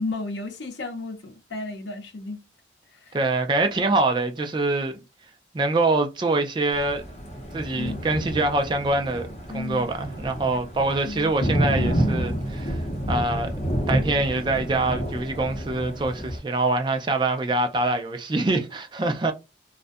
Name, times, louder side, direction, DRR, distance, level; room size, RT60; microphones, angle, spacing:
voice 1, 0.0-2.4 2.9-3.2 7.8-8.1 9.5-9.9 10.5-10.6 11.0-11.3, left 2 dB, 80° left, 0.6 m, -33 dB
voice 2, 3.1-5.0 5.5-7.0 7.5-9.3 9.5-13.5 13.9-19.3, right 2 dB, 25° right, 0.3 m, -24 dB
Thunder, 6.7-16.4, equal, 35° left, 0.6 m, -29 dB
2.4 x 2.1 x 2.5 m
head